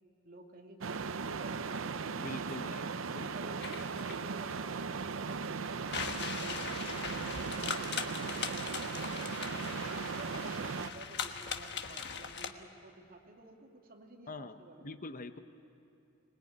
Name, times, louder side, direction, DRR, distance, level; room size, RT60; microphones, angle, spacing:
voice 1, 0.2-1.8 3.2-5.7 6.3-9.7 10.1-15.0, right 2 dB, 45° right, 1 dB, 2.6 m, -52 dB
sound 1, 0.8-10.9, right 5 dB, 75° right, 0.7 m, -38 dB
voice 2, 2.1-3.3 14.3-15.4, left 2 dB, 45° left, 9 dB, 0.9 m, -45 dB
sound 2, 3.6-12.5, left 6 dB, 60° left, 1.4 m, -40 dB
25.5 x 20.5 x 9.5 m, 2.7 s
head